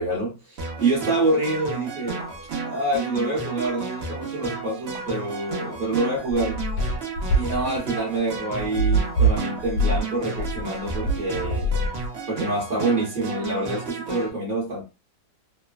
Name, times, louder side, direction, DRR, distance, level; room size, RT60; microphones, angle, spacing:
voice 1, 0.0-2.2 2.6-6.6 7.4-11.7 12.3-14.8, right 2 dB, 40° right, -6 dB, 0.7 m, -26 dB
sound 1, 0.6-14.3, right 4 dB, 80° right, 0.5 m, -33 dB
sound 2, 2.2-2.5 3.5-3.8 4.8-5.1 6.2-6.6 7.4-7.7 9.4-9.5 10.3-11.5, right 1 dB, 60° right, 1.1 m, -41 dB
sound 3, 6.4-12.4, right 2 dB, 75° left, 1.2 m, -24 dB
3.0 x 2.1 x 2.3 m, 0.28 s
omnidirectional pair, 2.1 m